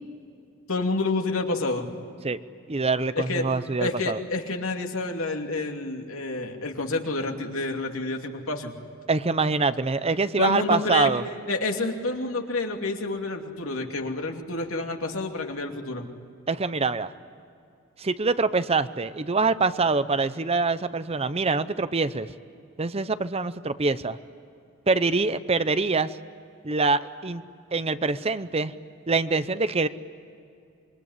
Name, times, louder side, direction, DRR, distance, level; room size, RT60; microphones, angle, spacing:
voice 1, 0.7-1.9 3.1-3.4 3.8-8.7 10.4-11.1 11.5-16.1, left 2 dB, 80° left, 3 dB, 2.8 m, -29 dB
voice 2, 2.7-4.2 9.1-11.2 16.5-17.1 18.0-22.3 22.8-24.2 24.9-26.2 26.6-27.4 27.7-28.7 29.1-29.9, right 4 dB, 30° right, 13 dB, 0.7 m, -24 dB
26.5 x 23.0 x 9.8 m, 2.5 s
head